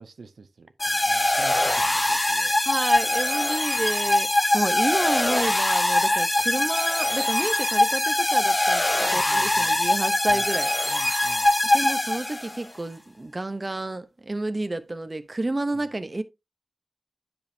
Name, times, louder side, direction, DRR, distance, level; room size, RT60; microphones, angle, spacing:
voice 1, 0.0-2.5 9.0-9.8 10.3-10.5 10.9-11.5 15.7-15.9, right 4 dB, 80° right, 0.8 m, -44 dB
sound 1, 0.8-12.6, left 1 dB, 20° left, 0.3 m, -22 dB
voice 2, 2.7-8.8 9.1-10.7 11.7-16.2, right 2 dB, 30° right, 0.7 m, -30 dB
9.9 x 5.1 x 2.6 m
wide cardioid pair, 75°, 0 cm